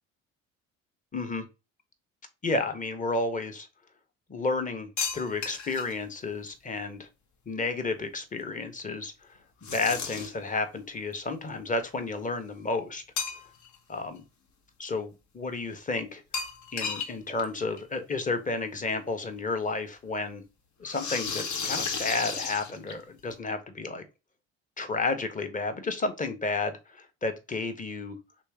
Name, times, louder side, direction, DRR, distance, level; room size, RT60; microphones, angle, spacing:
voice 1, 1.1-1.5 2.4-3.7 4.3-7.1 7.5-9.1 9.6-13.0 13.9-14.2 14.8-16.2 16.7-20.4 20.8-24.0 24.8-28.2, left 3 dB, 20° left, 1.0 m, -31 dB
sound 1, 5.0-6.0 9.6-10.5 13.2-13.7 14.1-14.2 16.3-17.1 17.4-17.5 17.8-17.9 19.1-19.2 20.9-23.2, left 5 dB, 50° left, 1.0 m, -33 dB
3.1 x 3.1 x 3.5 m
hypercardioid pair, 65°, 36 cm